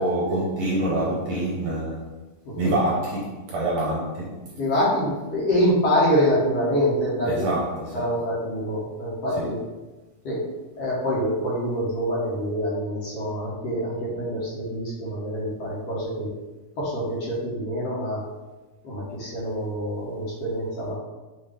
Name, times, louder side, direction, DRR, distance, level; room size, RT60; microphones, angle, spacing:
voice 1, 0.0-2.1 2.6-4.4 7.3-8.1 9.4-9.5, right 1 dB, 70° right, -5 dB, 1.8 m, -26 dB
voice 2, 2.5-2.8 4.6-7.5 7.9-9.6 10.2-10.4 10.8-16.3 16.8-18.2 18.8-20.9, equal, 65° left, -7 dB, 1.9 m, -25 dB
5.6 x 2.7 x 3.3 m, 1.2 s
omnidirectional pair, 3.6 m